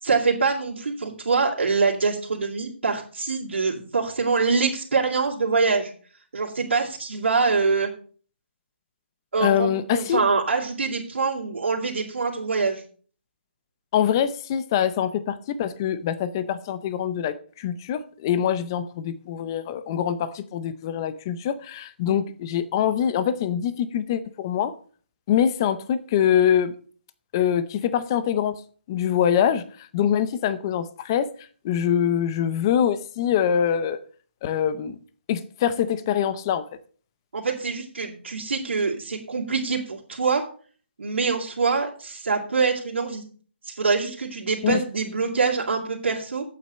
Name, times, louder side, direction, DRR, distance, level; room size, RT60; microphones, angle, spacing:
voice 1, 0.0-5.9 6.3-7.9 9.3-12.8 37.3-40.4 41.0-43.2 43.6-46.4, right 4 dB, 70° right, 3.1 m, -24 dB
voice 2, 9.4-10.2 13.9-24.7 25.3-26.7 27.3-28.5 28.9-29.6 29.9-31.3 31.6-34.0 34.4-35.0 35.3-36.6 44.6-44.8, left 9 dB, 20° left, 0.6 m, -24 dB
8.5 x 7.5 x 6.6 m
hypercardioid pair, 170°, 6 cm